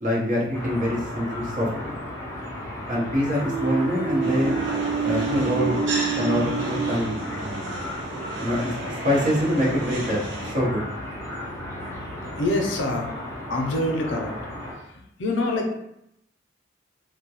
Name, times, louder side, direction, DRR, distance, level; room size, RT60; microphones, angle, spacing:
voice 1, 0.0-2.0 2.9-4.6 5.0-5.8 6.2-7.2 8.4-10.8, equal, 45° right, -4 dB, 0.7 m, -25 dB
sound 1, 0.5-14.8, left 1 dB, 15° left, 0.4 m, -35 dB
sound 2, 3.4-7.7, right 5 dB, 20° right, 1.1 m, -28 dB
sound 3, 4.2-10.5, right 2 dB, 85° right, 0.5 m, -33 dB
voice 2, 12.2-13.2 13.5-14.3 14.7-15.8, left 2 dB, 85° left, 2 dB, 0.5 m, -26 dB
2.2 x 2.1 x 2.7 m, 0.80 s
head